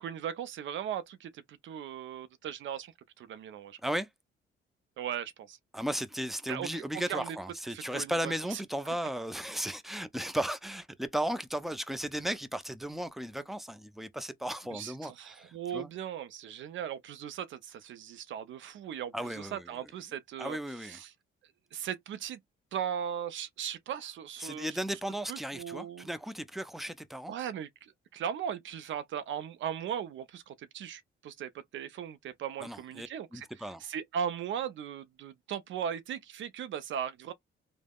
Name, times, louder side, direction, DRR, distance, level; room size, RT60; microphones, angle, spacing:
voice 1, 0.0-3.8 5.0-5.6 6.5-7.4 7.7-8.6 14.7-21.1 21.7-22.4 22.7-24.8 25.3-26.1 27.3-33.5 33.8-37.3, right 9 dB, 65° right, 0.4 m, -38 dB
voice 2, 5.7-15.9 19.1-19.7 20.4-21.0 24.4-27.3 32.6-33.8, equal, ahead, 0.4 m, -35 dB
3.4 x 2.0 x 2.2 m
cardioid pair, 105°, 21 cm